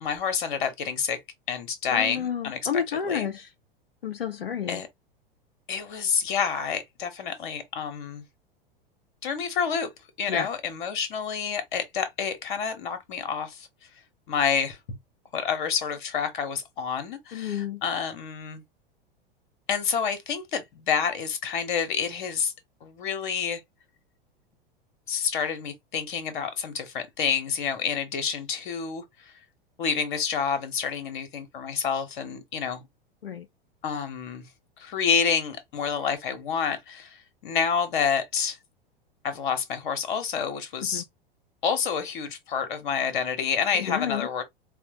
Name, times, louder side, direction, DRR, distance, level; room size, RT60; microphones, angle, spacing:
voice 1, 0.0-1.2 1.5-2.6 3.0-3.3 4.7-4.9 5.7-8.2 9.2-9.9 10.2-13.7 14.3-15.0 15.3-18.6 19.7-22.5 22.8-23.6 25.1-29.3 29.8-32.8 33.8-34.4 34.8-38.6 39.2-41.0 41.6-44.4, left 6 dB, 55° left, 1.0 m, -28 dB
voice 2, 1.9-3.5 4.0-4.8 10.3-10.5 17.3-17.8 33.2-33.5 40.9-41.0 43.9-44.3, left 7 dB, 80° left, 0.5 m, -30 dB
4.2 x 2.1 x 2.7 m
figure-of-eight pair, 90°, 29 cm